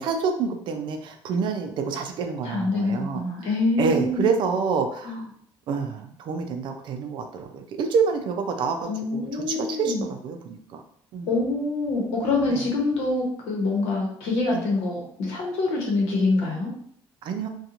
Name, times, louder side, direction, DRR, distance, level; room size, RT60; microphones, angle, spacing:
voice 1, 0.0-3.5 3.8-5.2 5.7-10.8 11.1-11.3 12.5-12.6 14.5-14.6 17.2-17.5, right 5 dB, 55° right, 5 dB, 0.4 m, -27 dB
voice 2, 2.4-4.3 5.0-5.2 8.8-10.0 11.3-16.7, left 3 dB, 85° left, -1 dB, 0.9 m, -25 dB
2.5 x 2.2 x 2.8 m, 0.62 s
cardioid pair, 155°, 10 cm